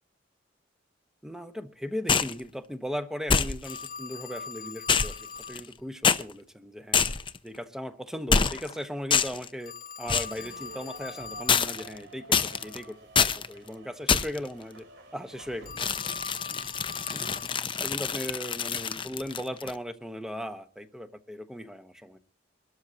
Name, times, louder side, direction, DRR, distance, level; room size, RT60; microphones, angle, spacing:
voice 1, 1.2-7.1 7.4-14.9 15.1-15.8 16.5-16.6 17.1-17.4 17.8-22.2, equal, 5° right, 8 dB, 1.1 m, -38 dB
sound 1, 2.1-2.4 3.3-3.9 4.9-5.7 6.0-6.2 6.9-7.4 8.3-8.7 9.1-9.5 10.1-10.4 11.5-12.0 12.3-12.8 13.1-13.5 14.1-14.5 15.8-19.7, left 6 dB, 25° left, 0.6 m, -26 dB
Telephone, 3.7-5.6 9.6-11.6 15.6-17.6, left 5 dB, 50° left, 1.1 m, -41 dB
sound 2, 10.3-17.5, right 3 dB, 70° right, 2.9 m, -50 dB
23.5 x 13.0 x 2.9 m, 0.37 s
head